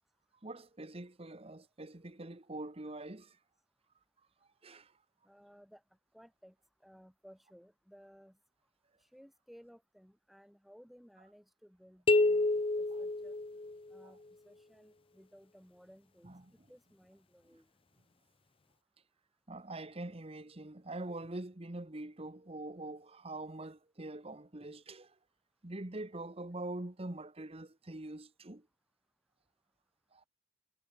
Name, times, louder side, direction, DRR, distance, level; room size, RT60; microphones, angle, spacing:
voice 1, 0.4-3.3 4.6-4.9 12.9-13.0 16.2-16.5 19.5-25.1 25.6-28.6 30.1-30.2, right 2 dB, 35° right, 1.3 m, -44 dB
voice 2, 5.2-5.8 6.1-6.5 6.8-8.4 9.0-13.4 13.9-14.2 14.4-16.3 16.7-17.7, equal, ahead, 6.3 m, -59 dB
sound 1, 12.1-14.0, left 2 dB, 30° left, 0.7 m, -29 dB
head